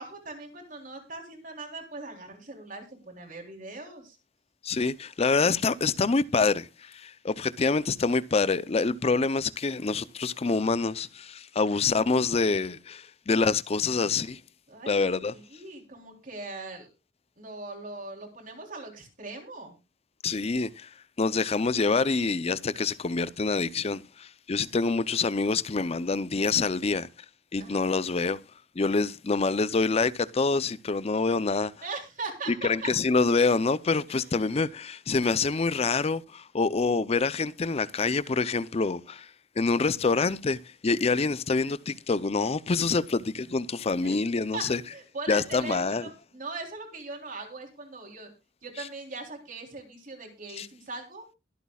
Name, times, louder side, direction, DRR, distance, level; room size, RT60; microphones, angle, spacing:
voice 1, 0.0-4.2 14.7-15.0 15.3-16.9 17.4-19.8 27.6-27.9 31.8-32.9 34.2-34.5 40.9-41.0 44.0-44.2 44.5-44.6 44.9-48.3 48.6-51.3, right 3 dB, 45° right, 3.5 m, -40 dB
voice 2, 4.6-14.4 14.9-15.3 20.2-20.9 21.2-27.1 27.5-28.4 28.8-31.7 32.5-39.3 39.6-44.8 45.3-46.0 50.6-50.7, left 4 dB, 35° left, 0.5 m, -26 dB
22.5 x 8.3 x 2.3 m
head